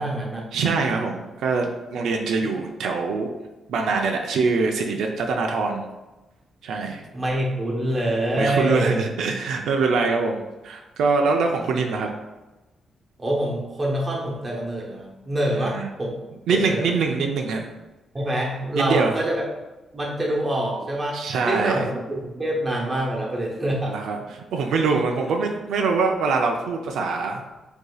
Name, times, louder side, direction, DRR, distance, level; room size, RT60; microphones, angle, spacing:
voice 1, 0.0-0.4 7.1-9.0 13.2-16.2 16.5-16.9 18.1-19.5 19.9-23.9, right 1 dB, 20° right, -2 dB, 0.9 m, -26 dB
voice 2, 0.5-3.3 3.7-5.9 6.6-7.0 8.3-12.1 15.5-15.9 16.5-17.7 18.7-19.2 21.1-21.9 23.9-27.4, right 4 dB, 90° right, 2 dB, 0.5 m, -24 dB
7.8 x 2.7 x 2.3 m, 1.1 s
wide cardioid pair, 155°, 0 cm